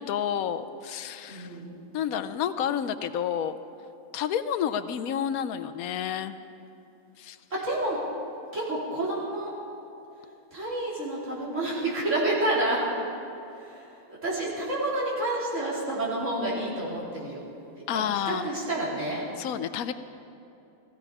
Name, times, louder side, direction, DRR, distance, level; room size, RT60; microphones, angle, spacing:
voice 1, 0.0-1.5 1.9-3.6 4.1-6.4 7.2-7.4 17.9-18.5 19.4-19.9, left 9 dB, 85° left, 11 dB, 1.1 m, -30 dB
voice 2, 1.3-1.7 7.5-8.0 8.5-9.5 10.5-12.8 14.1-17.4 17.9-19.2, right 1 dB, 60° right, -7 dB, 4.0 m, -29 dB
16.5 x 15.0 x 4.9 m, 2.8 s
omnidirectional pair, 1.5 m